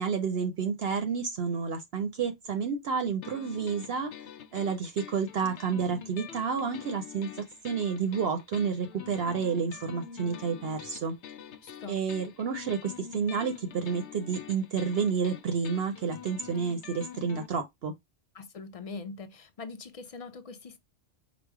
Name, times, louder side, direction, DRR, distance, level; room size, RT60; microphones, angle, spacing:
voice 1, 0.0-4.1 4.5-11.1 11.9-17.9, right 6 dB, 60° right, 0.8 m, -30 dB
sound 1, 3.2-17.5, left 8 dB, 70° left, 0.9 m, -46 dB
voice 2, 11.6-12.0 18.3-20.8, left 4 dB, 45° left, 0.4 m, -42 dB
5.0 x 2.0 x 4.7 m
omnidirectional pair, 1.2 m